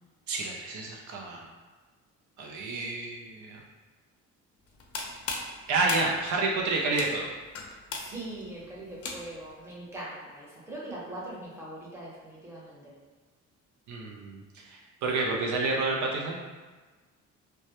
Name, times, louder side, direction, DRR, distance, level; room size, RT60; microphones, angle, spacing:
voice 1, 0.3-1.5 2.4-3.6 5.7-7.3 13.9-16.4, right 3 dB, 70° right, -1 dB, 0.5 m, -29 dB
sound 1, 4.7-9.5, left 3 dB, 55° left, 0.4 m, -38 dB
voice 2, 7.9-13.0, right 1 dB, 10° right, -6 dB, 0.7 m, -41 dB
2.1 x 2.0 x 2.8 m, 1.3 s
cardioid pair, 90°, 30 cm